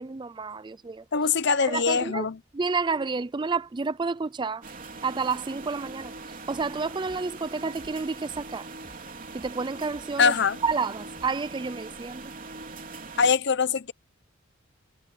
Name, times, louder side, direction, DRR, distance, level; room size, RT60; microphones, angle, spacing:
voice 1, 0.0-1.0 1.6-2.3 2.5-4.6 5.0-8.7 9.3-10.3 10.6-12.3, right 4 dB, 20° right, 0.4 m, -30 dB
voice 2, 1.1-2.4 10.2-10.6 13.2-13.9, left 5 dB, 55° left, 0.8 m, -23 dB
sound 1, 4.6-13.3, right 3 dB, 40° right, 3.3 m, -41 dB
sound 2, 6.0-6.2 6.5-9.0 9.4-11.5, equal, 20° left, 2.2 m, -54 dB
head